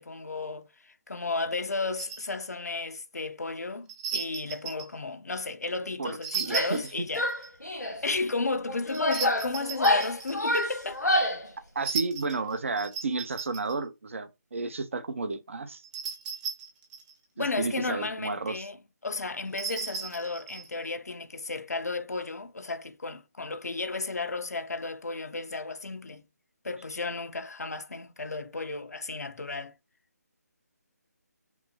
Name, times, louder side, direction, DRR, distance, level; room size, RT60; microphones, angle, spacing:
voice 1, 0.0-7.3 8.0-11.1 17.4-26.2 26.6-29.7, left 3 dB, 70° left, 0.7 m, -33 dB
sound 1, 2.0-2.3 3.9-4.9 6.2-7.5 8.9-10.8 11.8-13.8 15.8-17.1 19.5-20.7, right 6 dB, 10° right, 0.5 m, -36 dB
voice 2, 6.0-6.8 11.7-15.8 17.4-18.7, right 3 dB, 50° right, 0.7 m, -32 dB
Female speech woman speaking / Yell, 6.4-6.9 7.2-8.0 8.7-11.5, left 1 dB, 85° left, 1.5 m, -28 dB
5.8 x 2.0 x 4.3 m
figure-of-eight pair, 150°, 9 cm